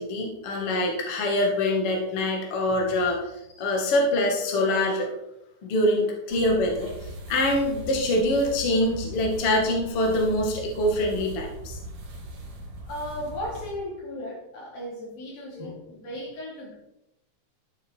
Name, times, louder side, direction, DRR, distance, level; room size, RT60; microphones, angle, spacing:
voice 1, 0.0-3.2 3.6-5.1 5.6-6.9 7.3-11.8, left 1 dB, 45° left, 1 dB, 2.7 m, -24 dB
sound 1, 6.3-13.7, right 1 dB, 65° right, 3.6 m, -39 dB
voice 2, 12.9-16.8, left 1 dB, 85° left, -4 dB, 5.9 m, -36 dB
13.0 x 8.1 x 4.6 m, 0.85 s
omnidirectional pair, 3.9 m